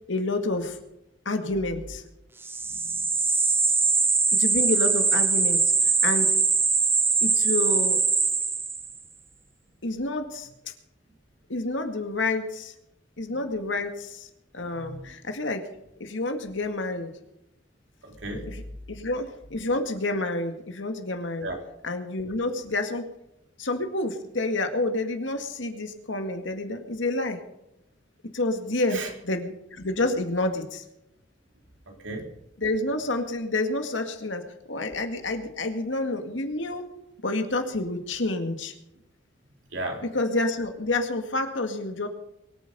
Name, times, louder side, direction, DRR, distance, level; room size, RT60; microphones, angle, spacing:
voice 1, 0.1-0.8 1.3-2.0 4.3-6.3 7.2-8.0 9.8-10.5 11.5-12.7 13.2-15.7 16.0-17.1 18.5-18.6 18.9-21.5 21.8-23.0 23.6-27.4 28.3-30.8 32.6-34.4 34.7-36.8 37.2-38.7 40.1-42.1, left 2 dB, 90° left, 5 dB, 2.1 m, -29 dB
sound 1, 2.4-9.0, right 4 dB, 10° right, 0.8 m, -22 dB
voice 2, 2.7-3.0 13.2-13.4 14.7-15.1 18.0-18.4 21.4-21.6 28.9-29.1 31.9-32.3 39.7-40.0, right 2 dB, 85° right, 1 dB, 3.7 m, -35 dB
23.5 x 9.2 x 5.4 m, 0.86 s
head